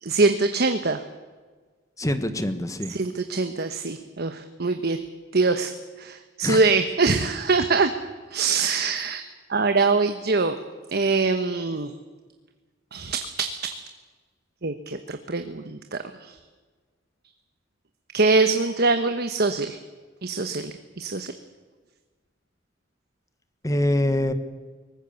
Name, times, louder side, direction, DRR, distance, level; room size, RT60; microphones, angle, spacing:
voice 1, 0.0-1.0 2.9-5.0 5.3-5.7 6.0-7.9 8.3-9.2 9.5-10.6 10.9-11.9 12.9-13.8 14.6-16.4 18.1-19.8 20.2-21.3, right 3 dB, 55° right, 7 dB, 1.2 m, -23 dB
voice 2, 2.0-2.9 6.4-6.6 23.6-24.3, left 1 dB, 20° left, 10 dB, 1.5 m, -24 dB
23.0 x 20.0 x 7.1 m, 1.4 s
head